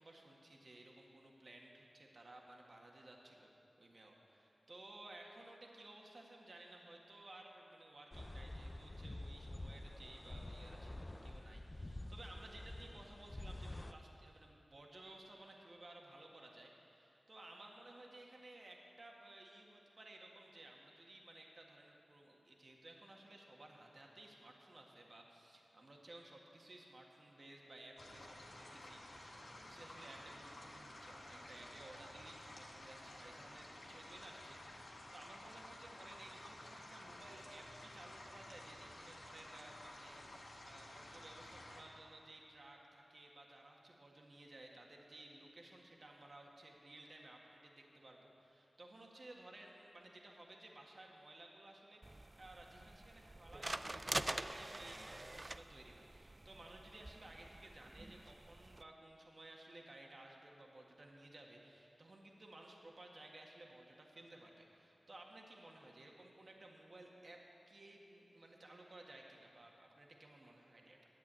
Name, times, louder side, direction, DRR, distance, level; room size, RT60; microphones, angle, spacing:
voice 1, 0.0-3.5 3.8-67.4 67.7-71.0, right 1 dB, 55° right, 0 dB, 1.7 m, -57 dB
sound 1, 8.1-13.9, left 1 dB, 30° left, 0.6 m, -48 dB
sound 2, 28.0-41.8, left 1 dB, 75° left, 1.9 m, -54 dB
sound 3, 52.0-58.8, right 2 dB, 35° right, 0.4 m, -46 dB
11.0 x 8.2 x 8.9 m, 2.9 s
cardioid pair, 50°, 0 cm